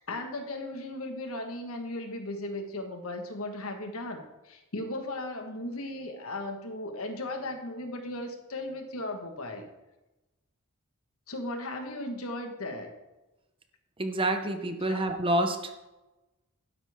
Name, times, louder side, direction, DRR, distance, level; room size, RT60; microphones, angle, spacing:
voice 1, 0.0-9.7 11.3-12.9 14.9-15.0, left 1 dB, 70° left, 5 dB, 1.5 m, -36 dB
voice 2, 14.0-15.7, right 1 dB, 25° right, 6 dB, 0.9 m, -28 dB
12.5 x 9.9 x 3.6 m, 1.0 s
head